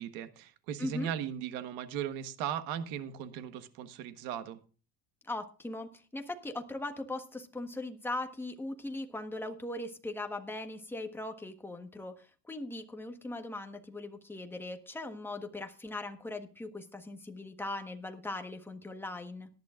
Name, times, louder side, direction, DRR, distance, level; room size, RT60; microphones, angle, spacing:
voice 1, 0.0-4.6, right 9 dB, 85° right, 10 dB, 1.4 m, -37 dB
voice 2, 0.8-1.1 5.2-19.5, left 2 dB, 5° left, 5 dB, 1.4 m, -39 dB
18.5 x 11.5 x 2.5 m, 0.37 s
cardioid pair, 140°, 34 cm